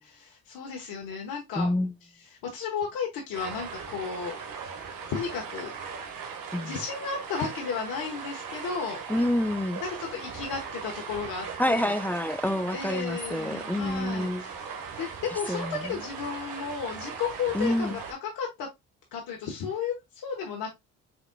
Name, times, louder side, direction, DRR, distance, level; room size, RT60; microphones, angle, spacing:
voice 1, 0.0-1.7 2.4-5.7 6.6-9.0 9.8-12.0 12.7-18.7 19.1-20.7, left 6 dB, 75° left, 1.2 m, -34 dB
voice 2, 1.6-1.9 6.5-6.8 9.1-9.8 11.6-14.4 15.5-15.9 17.5-18.0, left 1 dB, 5° left, 0.4 m, -27 dB
sound 1, 3.3-18.1, right 6 dB, 70° right, 1.5 m, -39 dB
5.1 x 3.7 x 2.2 m
supercardioid pair, 65°, 35 cm